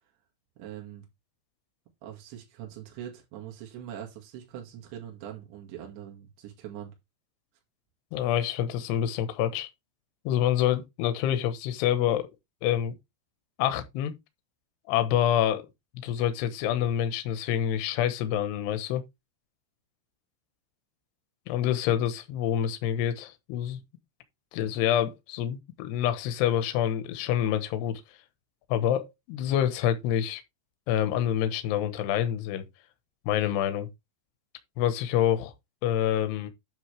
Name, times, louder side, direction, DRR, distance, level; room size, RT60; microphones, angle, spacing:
voice 1, 0.6-1.1 2.0-6.9, right 10 dB, 70° right, 4.2 m, -42 dB
voice 2, 8.1-9.7 10.3-12.3 12.6-12.9 13.6-14.1 14.9-15.7 16.0-19.0 21.5-23.8 24.5-28.0 28.7-30.4 30.9-32.6 33.3-33.9 34.8-35.5 35.8-36.5, left 10 dB, 70° left, 3.0 m, -27 dB
9.6 x 6.5 x 3.4 m
omnidirectional pair, 5.5 m